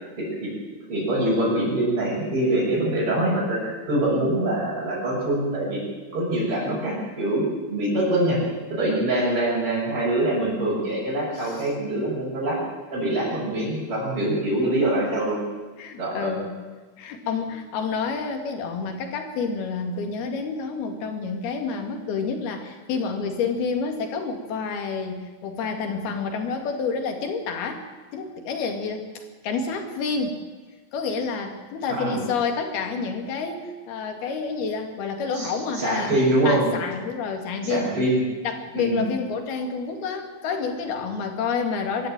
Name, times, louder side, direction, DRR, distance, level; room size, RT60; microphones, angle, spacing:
voice 1, 0.2-0.5 0.9-5.8 6.1-8.4 8.7-12.6 12.9-15.4 16.0-16.4 32.0-32.2 35.3-36.7 37.6-38.2 38.7-39.1, right 1 dB, 30° right, -8 dB, 7.0 m, -24 dB
voice 2, 11.3-11.7 15.8-16.5 17.0-27.8 28.1-30.4 30.9-36.1 36.5-37.9 38.4-42.1, left 5 dB, 70° left, 5 dB, 4.1 m, -29 dB
24.0 x 13.0 x 9.0 m, 1.4 s
omnidirectional pair, 4.7 m